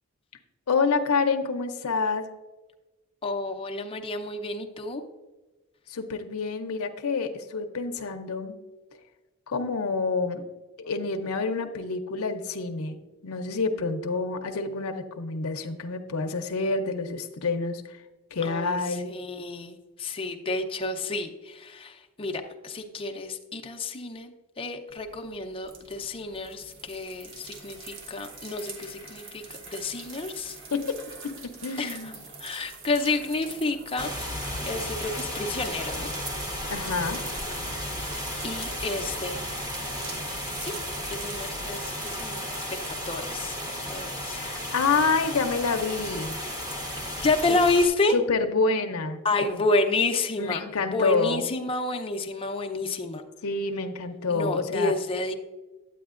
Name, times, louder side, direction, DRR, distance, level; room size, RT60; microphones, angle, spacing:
voice 1, 0.7-2.3 5.9-8.5 9.5-10.5 10.8-18.0 18.3-19.1 30.7-32.1 36.7-37.2 44.3-46.4 47.5-47.6 48.1-49.6 50.4-51.5 53.4-54.9, left 4 dB, 75° left, 5 dB, 0.6 m, -28 dB
voice 2, 3.2-5.0 18.4-30.6 31.8-32.1 32.4-34.3 34.7-36.1 38.4-39.5 40.6-40.7 41.1-44.4 47.2-48.1 49.2-53.2 54.3-55.3, left 2 dB, 25° left, 4 dB, 0.6 m, -30 dB
sound 1, 24.9-42.9, right 4 dB, 60° right, 1.1 m, -44 dB
sound 2, 34.0-47.9, left 1 dB, 15° right, 1.1 m, -34 dB
9.1 x 8.6 x 2.5 m, 1.2 s
head